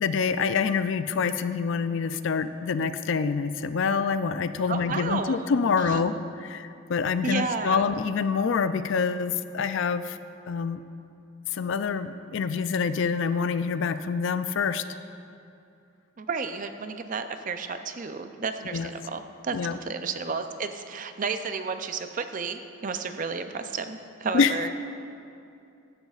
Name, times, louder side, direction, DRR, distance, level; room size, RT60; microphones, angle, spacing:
voice 1, 0.0-10.2 10.5-10.8 11.5-14.8 18.7-18.9 19.5-19.8 24.3-24.5, left 5 dB, 60° left, 11 dB, 0.3 m, -26 dB
voice 2, 4.7-5.4 5.8-6.0 7.2-7.9 16.2-24.7, right 4 dB, 35° right, 8 dB, 0.4 m, -32 dB
15.0 x 10.5 x 2.4 m, 2.6 s
head